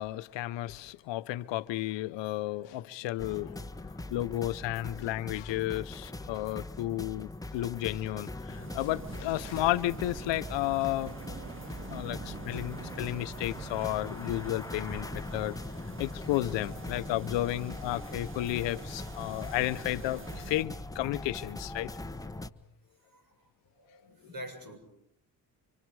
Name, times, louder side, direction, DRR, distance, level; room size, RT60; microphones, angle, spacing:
voice 1, 0.0-11.1 11.9-15.6 16.0-21.9, left 16 dB, 85° left, 0.8 m, -33 dB
sound 1, 3.2-22.5, left 2 dB, 10° left, 1.0 m, -41 dB
sound 2, 8.5-20.6, right 6 dB, 30° right, 0.8 m, -46 dB
voice 2, 11.8-12.2 20.6-20.8 21.1-21.3 21.6-21.7 22.2-22.7 23.1-23.3 23.7-24.8, equal, 50° right, 7.5 m, -48 dB
29.5 x 25.5 x 4.8 m
supercardioid pair, 65°, 43 cm